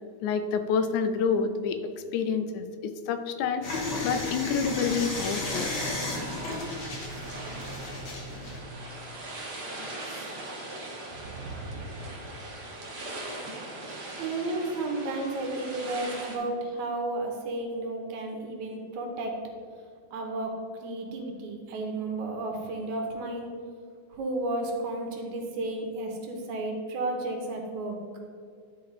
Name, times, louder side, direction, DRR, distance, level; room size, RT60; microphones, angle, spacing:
voice 1, 0.2-3.7 4.0-5.7, left 6 dB, 85° left, 9 dB, 2.0 m, -28 dB
sound 1, 3.6-8.6, left 2 dB, 50° left, 1.3 m, -33 dB
sound 2, 5.1-16.4, right 2 dB, 50° right, 1.3 m, -40 dB
voice 2, 10.0-10.4 11.1-12.0 14.2-19.4 20.1-20.5 20.8-23.5 24.1-28.0, right 2 dB, 80° right, 2 dB, 2.3 m, -33 dB
10.5 x 4.3 x 4.0 m, 2.2 s
omnidirectional pair, 3.5 m